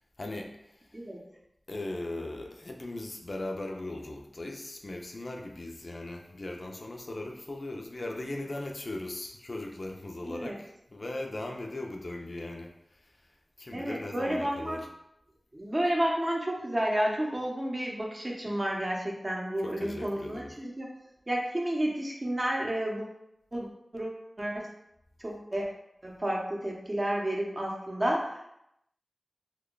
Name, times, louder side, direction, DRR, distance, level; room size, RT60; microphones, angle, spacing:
voice 1, 0.2-0.9 1.7-13.1 13.6-14.9 19.6-20.5, left 2 dB, 55° left, 2 dB, 0.4 m, -38 dB
voice 2, 10.3-10.6 13.7-14.8 15.5-20.9 21.3-23.2 23.5-23.7 23.9-24.7 25.2-25.7 26.0-28.4, right 1 dB, 35° right, -2 dB, 0.7 m, -31 dB
2.9 x 2.2 x 3.7 m, 0.81 s
wide cardioid pair, 60°, 0 cm